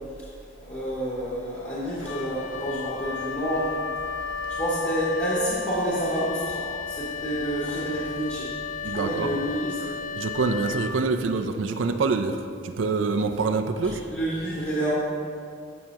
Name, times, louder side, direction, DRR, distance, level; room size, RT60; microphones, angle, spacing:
voice 1, 0.6-3.8 4.5-8.5 8.9-9.8 13.8-14.9, right 1 dB, 35° left, -9 dB, 1.8 m, -29 dB
Wind instrument woodwind instrument, 2.0-11.5, left 5 dB, 90° left, 0.5 m, -34 dB
voice 2, 8.8-9.3 10.2-14.0, right 4 dB, 75° right, 7 dB, 0.5 m, -26 dB
14.5 x 6.4 x 2.8 m, 2.3 s
head